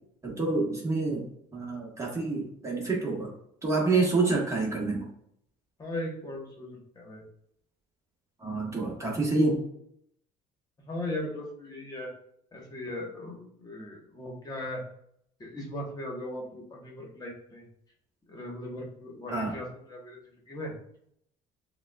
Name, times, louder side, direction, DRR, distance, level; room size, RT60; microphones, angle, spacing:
voice 1, 0.2-1.3 1.5-3.3 3.6-5.1 8.4-9.6 19.3-19.6, right 3 dB, 20° right, -2 dB, 1.3 m, -27 dB
voice 2, 5.8-7.2 10.8-12.1 12.5-14.8 15.4-17.6 18.3-20.2 20.5-20.7, left 1 dB, 25° left, -1 dB, 1.2 m, -38 dB
5.9 x 2.3 x 2.3 m, 0.72 s
supercardioid pair, 95°, 15 cm